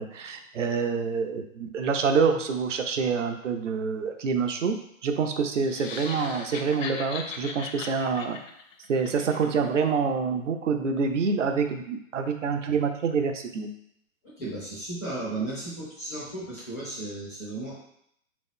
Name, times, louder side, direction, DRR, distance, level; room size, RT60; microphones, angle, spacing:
voice 1, 0.0-4.8 5.0-8.4 8.9-13.7, right 5 dB, 60° right, 6 dB, 0.6 m, -26 dB
sound 1, 5.6-9.8, left 4 dB, 65° left, 0.7 m, -39 dB
voice 2, 14.2-17.8, right 2 dB, 15° left, -7 dB, 0.4 m, -35 dB
3.5 x 3.0 x 3.6 m, 0.73 s
figure-of-eight pair, 120°, 42 cm